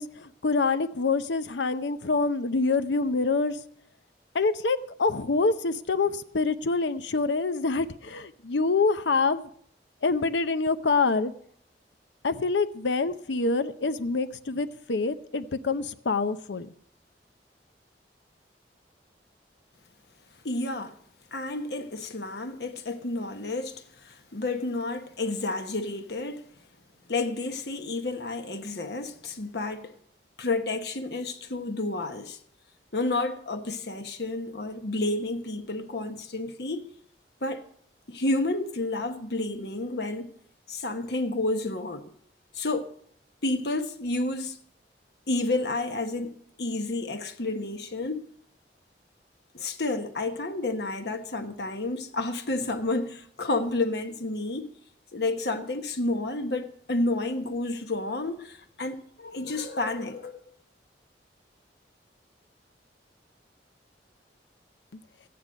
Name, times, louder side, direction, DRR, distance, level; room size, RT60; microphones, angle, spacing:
voice 1, 0.0-3.6 4.3-9.5 10.0-11.3 12.2-16.7, left 4 dB, 85° left, 0.7 m, -26 dB
voice 2, 20.4-21.0 21.3-26.5 27.1-29.9 30.4-32.4 32.9-36.9 37.4-37.6 38.1-40.3 40.7-42.1 42.5-42.9 43.4-44.6 45.3-48.2 49.5-54.7 55.1-60.4, left 2 dB, 65° left, 1.2 m, -30 dB
14.5 x 9.4 x 5.2 m
head